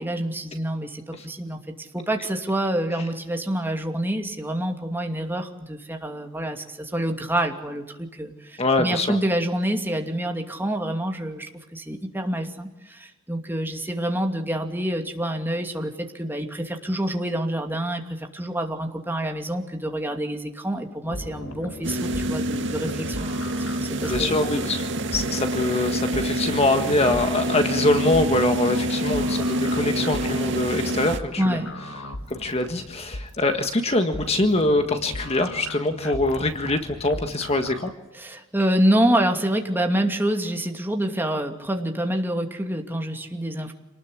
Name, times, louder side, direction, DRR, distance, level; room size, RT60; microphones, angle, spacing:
voice 1, 0.0-23.4 23.7-24.3 31.4-31.8 38.1-43.7, right 1 dB, 10° right, 3 dB, 2.7 m, -27 dB
voice 2, 8.6-9.2 24.1-31.6 32.3-37.9, left 2 dB, 30° left, 6 dB, 1.6 m, -24 dB
sound 1, 21.1-37.9, left 1 dB, 85° left, 2.1 m, -38 dB
sound 2, 21.8-31.2, right 1 dB, 60° right, 1.8 m, -27 dB
27.5 x 19.5 x 8.6 m, 1.0 s
head